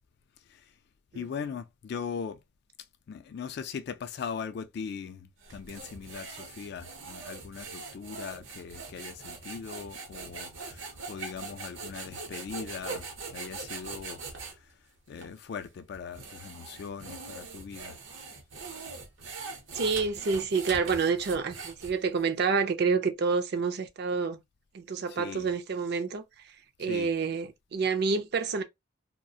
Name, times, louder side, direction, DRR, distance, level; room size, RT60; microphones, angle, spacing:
voice 1, 1.1-2.4 3.1-13.1 13.3-14.2 15.1-18.0 25.1-25.5 26.8-27.1, left 6 dB, 55° left, 0.3 m, -40 dB
sound 1, 5.4-14.6 15.2-15.3 15.9-22.2, right 4 dB, 80° right, 0.7 m, -42 dB
voice 2, 19.7-24.4 24.7-26.2 26.8-28.6, right 5 dB, 55° right, 0.4 m, -28 dB
2.3 x 2.1 x 2.6 m
head